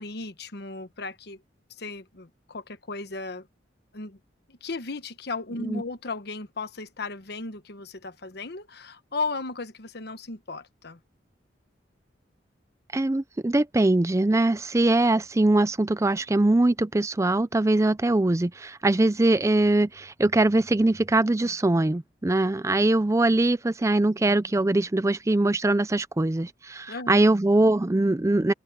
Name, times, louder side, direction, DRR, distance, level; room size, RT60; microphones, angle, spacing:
voice 1, 0.0-1.4 1.8-3.5 3.9-4.2 4.5-11.0 26.9-27.2, left 3 dB, 65° left, 1.2 m, -35 dB
voice 2, 12.9-28.5, right 2 dB, 15° right, 0.5 m, -22 dB
head